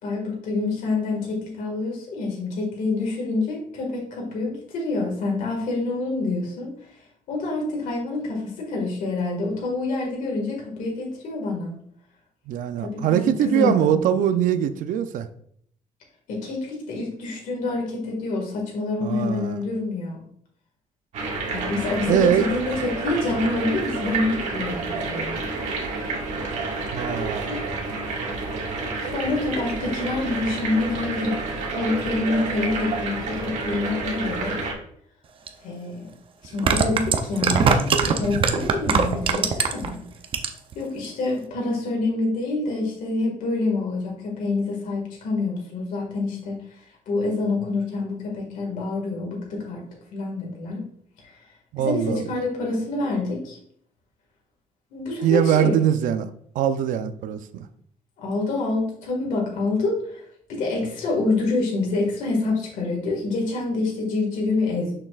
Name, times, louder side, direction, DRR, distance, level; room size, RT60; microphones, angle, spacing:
voice 1, 0.0-6.7 7.3-11.8 12.8-13.9 16.3-20.2 21.5-25.3 27.1-27.7 29.0-31.4 31.7-34.6 35.6-36.1 36.4-40.0 40.7-46.8 47.1-49.8 50.1-50.8 51.8-53.6 54.9-55.8 58.2-60.2 60.5-64.9, left 3 dB, 80° left, -1 dB, 1.9 m, -27 dB
voice 2, 12.5-15.3 19.0-19.6 22.0-22.5 26.9-27.5 51.7-52.3 55.2-57.7, right 10 dB, 85° right, 11 dB, 0.5 m, -22 dB
sound 1, 21.1-34.7, right 3 dB, 65° right, 1.6 m, -29 dB
Glass of Ice Cold Soda, 35.5-35.6 36.4-39.9 40.2-40.7 41.0-41.1, right 6 dB, 40° right, 0.6 m, -21 dB
6.6 x 5.9 x 2.4 m, 0.65 s
cardioid pair, 160°, 13 cm